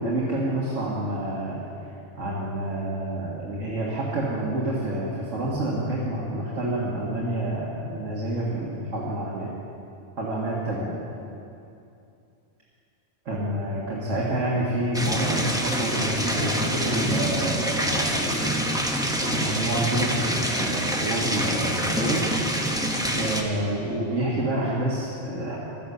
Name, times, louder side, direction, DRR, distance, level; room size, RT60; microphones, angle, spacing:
voice 1, 0.0-1.6 2.2-9.5 10.2-10.9 13.3-18.6 19.0-22.2 23.1-25.6, right 1 dB, 80° right, -6 dB, 2.1 m, -28 dB
sound 1, 14.9-23.4, equal, 5° right, 0.9 m, -26 dB
12.5 x 10.5 x 6.7 m, 2.7 s
omnidirectional pair, 1.3 m